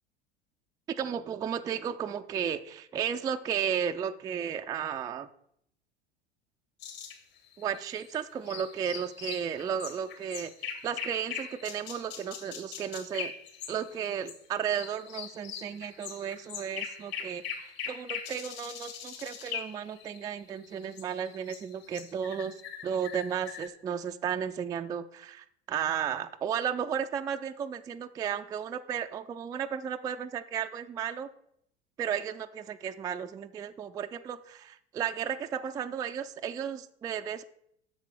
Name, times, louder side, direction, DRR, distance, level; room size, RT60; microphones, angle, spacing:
voice 1, 1.0-5.3 7.6-13.3 13.7-22.5 22.8-31.3 32.0-37.4, right 8 dB, 10° right, 7 dB, 0.3 m, -34 dB
sound 1, 6.8-14.4 14.7-23.7, left 7 dB, 60° left, 2.3 m, -41 dB
7.7 x 6.6 x 6.3 m, 0.71 s
figure-of-eight pair, 75°, 34 cm